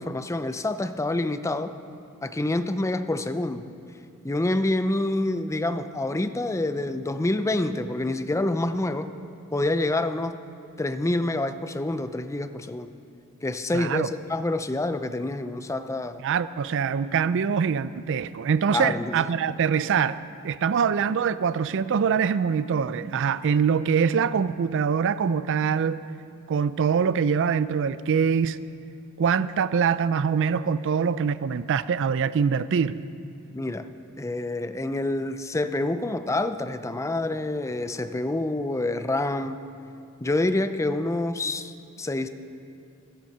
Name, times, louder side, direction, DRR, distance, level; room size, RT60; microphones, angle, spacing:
voice 1, 0.0-1.7 2.2-3.7 4.2-9.1 9.5-10.4 10.8-12.9 13.4-16.2 18.7-19.3 33.5-33.9 34.2-39.6 40.2-41.7 42.0-42.3, left 2 dB, 15° left, 10 dB, 0.5 m, -27 dB
voice 2, 13.7-14.1 16.2-20.2 20.4-26.0 26.5-28.6 29.2-33.0, right 6 dB, 60° right, 15 dB, 0.4 m, -24 dB
13.5 x 13.5 x 5.6 m, 2.6 s
head